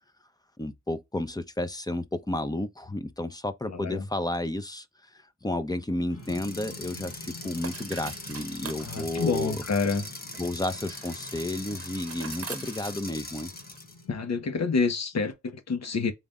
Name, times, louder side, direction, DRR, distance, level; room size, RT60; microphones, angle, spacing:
voice 1, 0.6-9.6 10.4-13.5, left 1 dB, 15° left, 0.7 m, -32 dB
voice 2, 3.7-4.1 8.8-10.0 14.1-16.1, left 4 dB, 60° left, 1.1 m, -28 dB
sound 1, 6.1-14.7, left 2 dB, 90° left, 2.8 m, -48 dB
sound 2, 6.1-13.8, right 6 dB, 50° right, 0.8 m, -46 dB
sound 3, 6.2-14.0, left 2 dB, 30° left, 1.1 m, -42 dB
4.1 x 3.3 x 2.4 m
cardioid pair, 50°, 30 cm